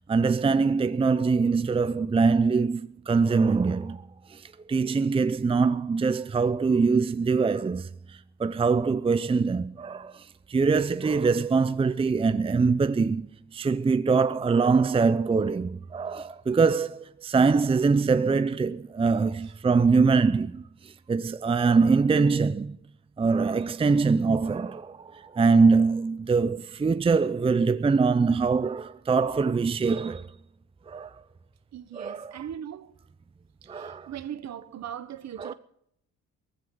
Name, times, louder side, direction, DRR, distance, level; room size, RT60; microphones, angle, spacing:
voice 1, 0.1-4.0 4.3-22.8 23.2-30.3 30.9-31.1 31.9-32.4 33.7-34.1 35.4-35.5, right 4 dB, 20° right, 0.5 m, -23 dB
voice 2, 31.7-32.9 33.6-35.5, right 10 dB, 60° right, 1.2 m, -39 dB
19.5 x 14.5 x 3.9 m
cardioid pair, 90°, 30 cm